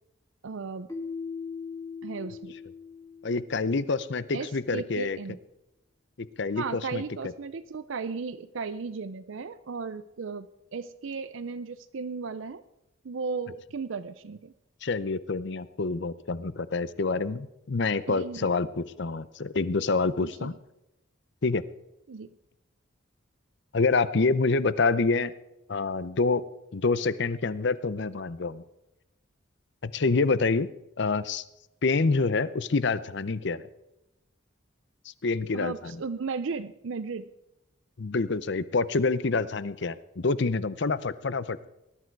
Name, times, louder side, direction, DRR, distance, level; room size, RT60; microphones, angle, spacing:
voice 1, 0.4-0.9 2.0-2.5 4.3-5.4 6.5-10.5 10.7-12.6 13.0-14.5 18.1-18.5 20.2-20.5 22.1-22.3 35.5-37.3, right 4 dB, 70° right, 13 dB, 0.5 m, -35 dB
Keyboard (musical), 0.9-3.7, left 5 dB, 15° left, 2.0 m, -39 dB
voice 2, 3.2-5.2 6.2-7.0 14.8-20.5 21.4-21.6 23.7-25.3 25.7-26.4 26.7-28.6 29.8-30.7 31.0-31.4 31.8-33.6 35.2-36.0 38.0-41.7, left 3 dB, 60° left, 16 dB, 0.7 m, -27 dB
20.0 x 11.5 x 4.6 m, 0.90 s
head